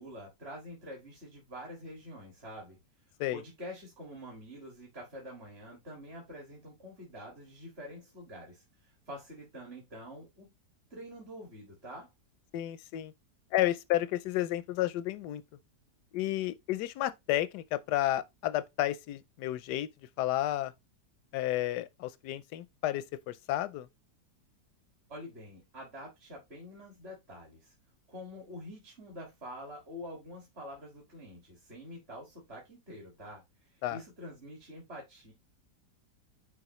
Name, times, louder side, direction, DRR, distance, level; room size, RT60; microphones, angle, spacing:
voice 1, 0.0-2.8 3.3-10.5 10.9-12.1 25.1-27.7 28.1-35.3, equal, 40° right, 2.2 m, -46 dB
voice 2, 12.5-13.1 13.5-15.4 16.1-19.9 20.2-20.7 21.3-23.9 33.8-34.0, left 14 dB, 85° left, 1.2 m, -31 dB
9.8 x 4.7 x 3.0 m
omnidirectional pair, 1.8 m